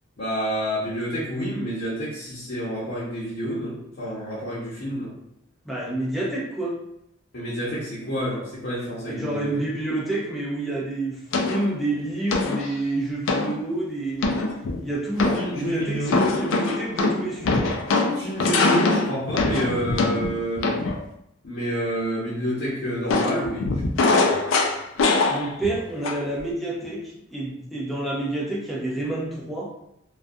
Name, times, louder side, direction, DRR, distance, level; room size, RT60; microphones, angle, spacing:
voice 1, 0.2-5.1 7.3-9.6 15.3-16.4 18.1-20.7 21.4-23.8, equal, 60° left, -10 dB, 0.7 m, -28 dB
voice 2, 5.7-6.8 9.2-14.4 14.8-16.1 16.4-17.8 25.3-29.7, right 2 dB, ahead, -4 dB, 0.5 m, -29 dB
sound 1, 11.3-11.7 12.3-12.7 13.3-13.6 14.2-14.8 15.2-15.6 16.1-21.0 23.1-25.8 26.0-26.4, left 3 dB, 80° left, 0.3 m, -23 dB
2.3 x 2.2 x 2.6 m, 0.77 s
head